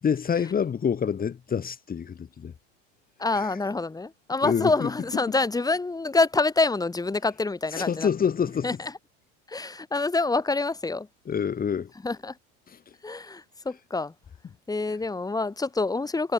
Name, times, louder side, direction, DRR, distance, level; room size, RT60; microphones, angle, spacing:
voice 1, 0.0-2.5 3.3-3.5 4.4-4.9 7.7-8.8 11.3-11.9 12.7-12.9, left 7 dB, 25° left, 5.8 m, -27 dB
voice 2, 3.2-8.1 8.6-8.9 9.5-11.1 12.0-12.4 13.0-14.1 14.7-16.3, left 3 dB, 10° left, 6.4 m, -26 dB
supercardioid pair, 115°, 32 cm